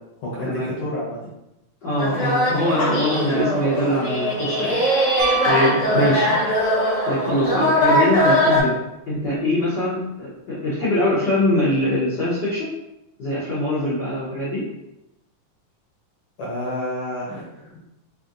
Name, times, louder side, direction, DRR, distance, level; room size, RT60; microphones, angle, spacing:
voice 1, 0.2-1.3 5.8-6.1 16.4-17.8, equal, 70° left, -5 dB, 1.3 m, -29 dB
voice 2, 1.8-5.1 5.4-6.3 6.6-6.7 7.1-8.8 9.1-12.7 13.2-14.6, left 1 dB, 85° left, -10 dB, 0.9 m, -23 dB
sound 1, 2.0-8.6, equal, 50° left, 0.9 m, -21 dB
Piano, 5.2-6.8 9.1-9.2, right 8 dB, 80° right, 2.0 m, -28 dB
5.1 x 2.7 x 2.6 m, 0.89 s
omnidirectional pair, 3.5 m